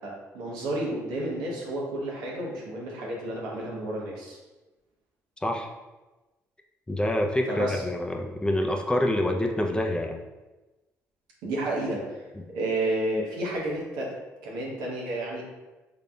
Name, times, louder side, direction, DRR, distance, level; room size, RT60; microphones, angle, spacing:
voice 1, 0.0-4.4 7.5-7.8 11.4-14.1 14.4-15.4, right 1 dB, 90° right, -3 dB, 0.9 m, -31 dB
voice 2, 6.9-10.2, left 1 dB, 15° left, 2 dB, 0.5 m, -26 dB
3.8 x 3.5 x 2.3 m, 1.1 s
supercardioid pair, 65°, 7 cm